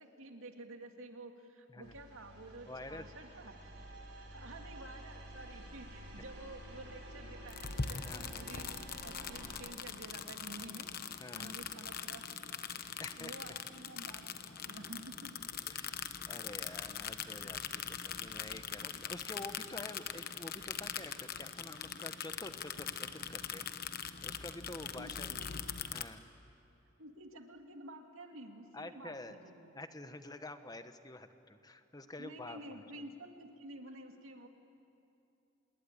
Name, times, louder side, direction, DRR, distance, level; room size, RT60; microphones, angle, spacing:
voice 1, 0.0-3.7 4.3-10.9 11.3-12.4 13.2-15.4 25.0-25.6 27.0-29.8 32.2-34.5, right 2 dB, 80° right, 4 dB, 2.3 m, -51 dB
sound 1, 1.8-9.6, right 1 dB, 55° right, 5.0 m, -50 dB
voice 2, 2.7-3.0 8.0-8.4 11.2-11.5 13.0-13.3 15.6-23.7 24.2-25.5 25.9-26.3 28.7-29.4 29.7-32.6 33.0-33.1, left 2 dB, 20° left, 9 dB, 1.0 m, -48 dB
sound 2, 7.5-26.0, left 7 dB, 45° left, 1.0 m, -42 dB
27.0 x 20.0 x 10.0 m, 2.8 s
head